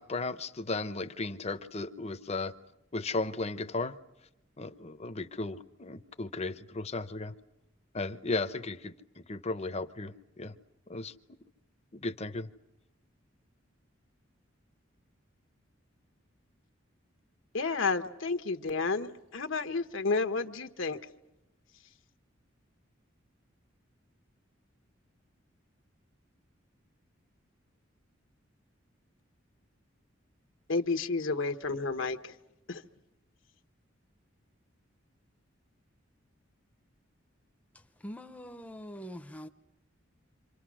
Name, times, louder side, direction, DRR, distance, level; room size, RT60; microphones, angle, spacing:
voice 1, 0.0-2.5 2.9-3.9 4.6-7.3 7.9-8.9 9.3-10.5 10.9-11.1 11.9-12.5, left 3 dB, 35° left, 0.8 m, -35 dB
voice 2, 17.5-21.0 30.7-32.4 32.7-32.8, left 4 dB, 75° left, 1.2 m, -31 dB
voice 3, 38.0-39.5, equal, 5° left, 0.8 m, -43 dB
28.5 x 26.5 x 6.3 m
head